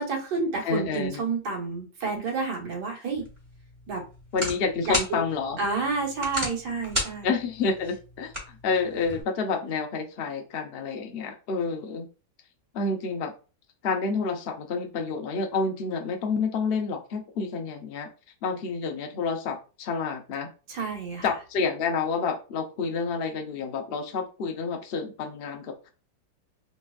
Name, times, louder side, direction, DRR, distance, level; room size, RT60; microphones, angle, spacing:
voice 1, 0.0-3.3 3.9-4.1 4.9-5.0 5.6-7.3 20.7-21.3, right 4 dB, 70° right, -2 dB, 1.8 m, -29 dB
voice 2, 0.6-1.2 4.3-5.6 7.2-12.1 12.7-13.3 13.8-18.1 18.4-20.5 21.2-25.9, left 4 dB, 70° left, 3 dB, 0.5 m, -29 dB
sound 1, 3.1-9.2, left 1 dB, 15° right, 1.7 m, -35 dB
3.8 x 3.1 x 2.3 m, 0.34 s
omnidirectional pair, 1.9 m